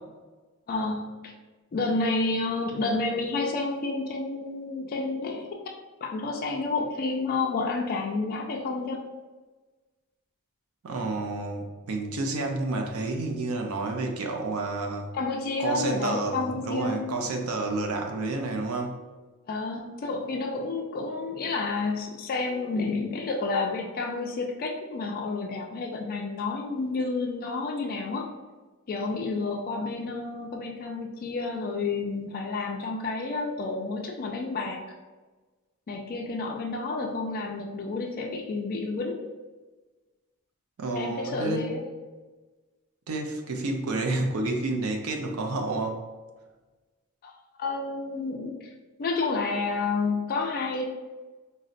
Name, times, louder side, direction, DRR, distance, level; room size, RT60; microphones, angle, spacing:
voice 1, 0.7-1.3 1.7-5.5 6.0-9.0 15.1-17.0 19.5-28.3 28.9-34.8 35.9-39.2 41.0-41.8 47.2-47.3 47.6-48.7 49.0-50.8, left 3 dB, 40° left, 1 dB, 0.3 m, -30 dB
voice 2, 10.8-15.1 15.6-18.9 40.8-41.8 43.1-46.0, right 2 dB, 70° right, 3 dB, 0.4 m, -30 dB
3.9 x 2.0 x 2.5 m, 1.3 s
head